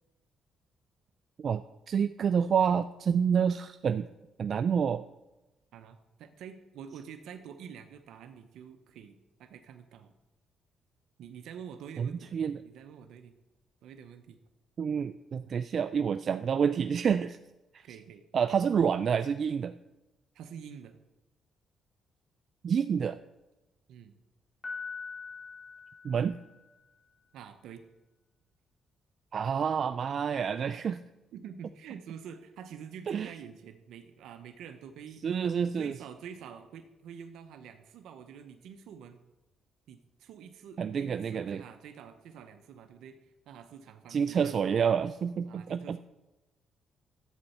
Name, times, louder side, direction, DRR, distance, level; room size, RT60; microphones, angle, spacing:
voice 1, 1.9-4.1 4.4-5.0 12.0-12.6 14.8-17.4 17.7-17.9 18.3-19.8 22.6-23.2 26.0-26.4 29.3-31.0 33.1-33.3 35.2-36.0 40.8-41.6 44.1-46.0, right 7 dB, 55° right, 11 dB, 0.3 m, -28 dB
voice 2, 5.7-10.1 11.2-12.3 12.6-13.3 13.8-14.4 17.8-18.2 18.5-18.6 20.3-21.0 23.9-24.2 27.3-27.8 31.3-35.3 35.8-39.2 39.9-44.6 45.5-46.0, right 7 dB, 80° right, 8 dB, 0.7 m, -47 dB
Piano, 24.6-26.7, left 5 dB, 35° left, 3.3 m, -42 dB
11.0 x 8.0 x 4.2 m, 1.0 s
cardioid pair, 90°, 0 cm